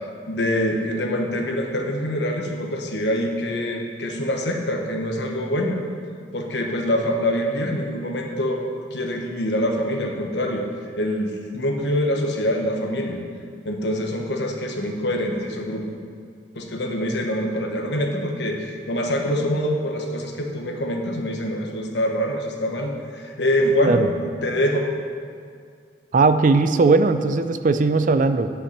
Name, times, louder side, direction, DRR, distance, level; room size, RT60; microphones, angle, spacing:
voice 1, 0.0-5.8 6.3-8.6 8.9-10.7 11.0-13.2 13.6-15.8 16.5-24.9, equal, 70° left, 2 dB, 1.1 m, -25 dB
voice 2, 26.1-28.5, right 3 dB, 45° right, 11 dB, 0.4 m, -18 dB
8.4 x 5.7 x 6.6 m, 2.2 s
head